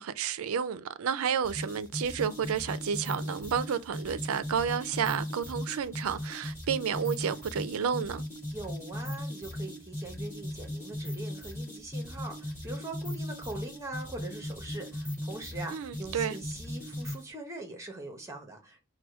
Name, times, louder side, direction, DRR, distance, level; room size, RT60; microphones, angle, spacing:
voice 1, 0.0-8.2 15.7-16.4, right 7 dB, 85° right, 0.4 m, -31 dB
sound 1, 1.4-17.3, left 1 dB, 15° left, 2.4 m, -38 dB
voice 2, 8.5-18.8, right 2 dB, 15° right, 0.8 m, -42 dB
4.8 x 2.2 x 4.7 m
head